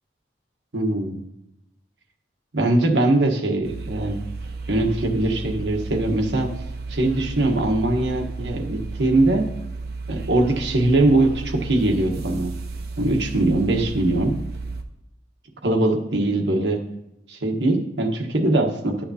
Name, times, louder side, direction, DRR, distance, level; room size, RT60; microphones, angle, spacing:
voice 1, 0.7-1.2 2.5-4.2 4.7-6.5 6.9-9.4 10.1-12.5 13.0-14.4 15.6-16.8 17.3-19.0, right 2 dB, 85° right, 2 dB, 1.3 m, -21 dB
sound 1, 3.6-14.8, right 3 dB, 60° right, 0.7 m, -33 dB
11.5 x 8.7 x 2.8 m, 0.83 s
head